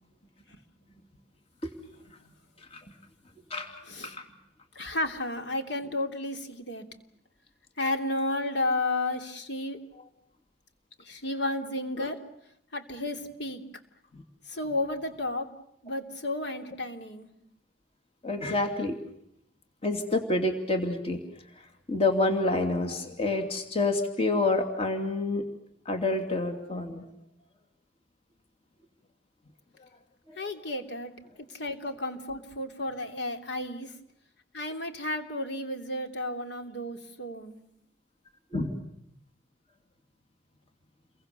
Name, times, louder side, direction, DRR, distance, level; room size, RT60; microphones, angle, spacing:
voice 1, 3.9-4.2 4.7-6.9 7.8-9.8 11.0-12.2 12.7-13.6 14.5-15.5 15.8-17.3 30.4-31.1 31.5-33.9 34.5-37.6, left 2 dB, 60° left, 5 dB, 3.1 m, -32 dB
voice 2, 18.2-19.0 19.8-21.2 21.9-25.4 25.9-27.1 30.3-30.4 38.5-38.7, left 2 dB, 30° left, 5 dB, 2.8 m, -28 dB
29.5 x 23.0 x 6.9 m, 0.77 s
head